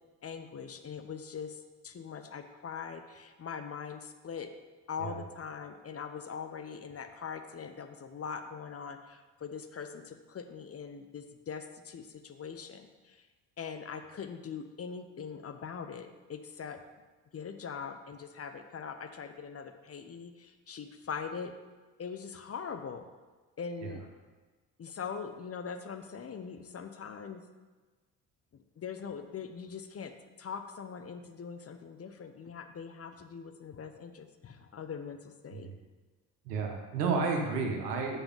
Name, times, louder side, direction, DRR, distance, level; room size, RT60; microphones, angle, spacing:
voice 1, 0.2-4.5 4.9-13.3 13.6-16.8 17.3-21.5 22.0-23.0 23.6-24.0 24.8-27.4 28.8-30.1 30.4-35.7, left 6 dB, 30° left, 7 dB, 0.8 m, -42 dB
voice 2, 36.4-38.2, right 4 dB, 75° right, 2 dB, 1.4 m, -31 dB
6.9 x 5.6 x 5.6 m, 1.3 s
figure-of-eight pair, 50°, 48 cm